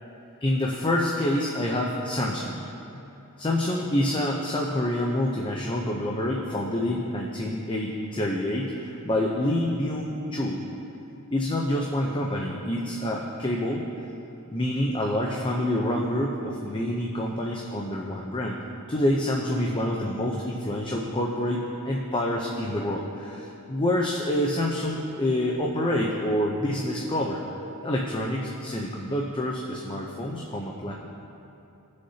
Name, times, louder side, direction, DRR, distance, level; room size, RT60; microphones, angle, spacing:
voice 1, 0.4-2.5 3.4-10.6 11.3-13.9 14.5-18.6 18.9-27.4 27.8-30.9, left 1 dB, 25° left, -1 dB, 0.6 m, -27 dB
17.0 x 6.5 x 2.8 m, 3.0 s
head